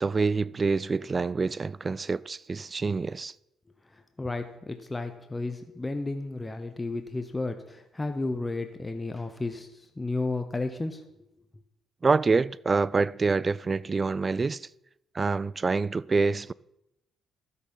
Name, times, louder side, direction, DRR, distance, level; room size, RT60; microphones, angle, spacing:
voice 1, 0.0-3.3 12.0-14.7 15.1-16.5, right 4 dB, 30° right, 0.3 m, -26 dB
voice 2, 3.9-11.0, left 2 dB, 15° left, 0.9 m, -33 dB
13.0 x 8.2 x 5.6 m
cardioid pair, 90°, 0 cm